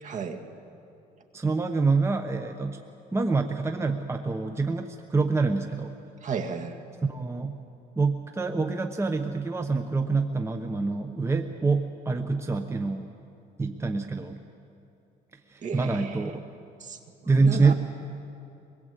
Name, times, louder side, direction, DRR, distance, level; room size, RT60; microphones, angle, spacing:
voice 1, 0.0-0.4 6.2-6.8 15.6-16.2 16.8-17.7, right 6 dB, 50° right, 6 dB, 2.1 m, -34 dB
voice 2, 1.3-2.8 3.1-5.9 7.1-7.6 8.0-13.1 13.6-14.4 15.5-16.4 17.3-17.7, right 4 dB, 15° right, 6 dB, 1.0 m, -26 dB
24.0 x 21.0 x 8.2 m, 2.7 s
cardioid pair, 110°, 17 cm